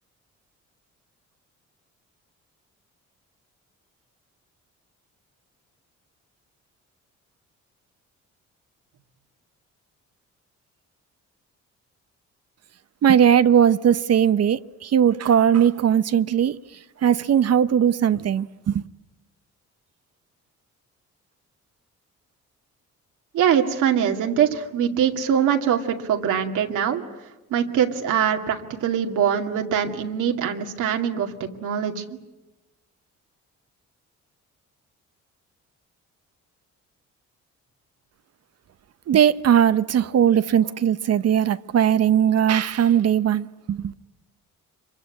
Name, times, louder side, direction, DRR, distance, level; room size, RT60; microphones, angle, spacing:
voice 1, 13.0-16.6 17.0-18.8 39.1-43.9, right 9 dB, 55° right, 0.9 m, -19 dB
voice 2, 23.3-27.0 27.5-32.2, right 8 dB, 80° right, 2.4 m, -23 dB
25.5 x 23.5 x 9.6 m
cardioid pair, 90°, 30 cm